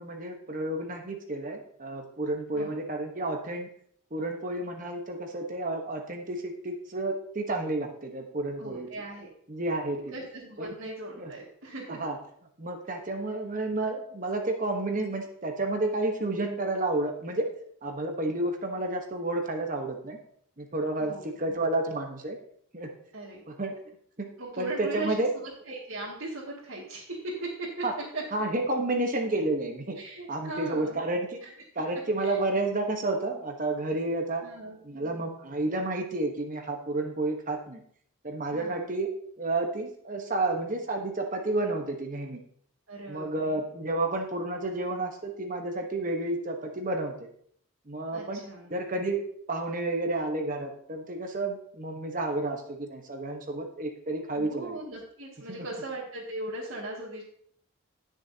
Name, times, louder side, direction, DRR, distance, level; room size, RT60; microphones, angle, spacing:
voice 1, 0.0-3.7 4.1-8.9 9.5-10.0 10.6-10.7 11.2-11.3 12.0-12.2 12.6-17.4 17.8-20.2 20.6-22.4 22.7-22.9 23.6-23.8 24.2-24.3 24.6-25.3 27.8-27.9 28.3-30.0 30.3-31.4 31.7-34.4 34.8-37.8 38.2-39.1 39.4-42.4 43.1-47.1 47.9-48.4 48.7-49.2 49.5-54.8, right 2 dB, 40° right, 3 dB, 1.2 m, -30 dB
voice 2, 8.6-9.3 10.1-12.1 21.0-21.2 23.1-23.4 24.4-27.8 28.1-28.2 29.9-31.1 31.4-31.5 32.2-32.4 34.4-34.8 38.5-38.9 42.9-43.6 48.1-48.7 54.4-57.2, right 2 dB, 75° right, -5 dB, 2.3 m, -38 dB
18.0 x 6.5 x 2.8 m, 0.63 s
head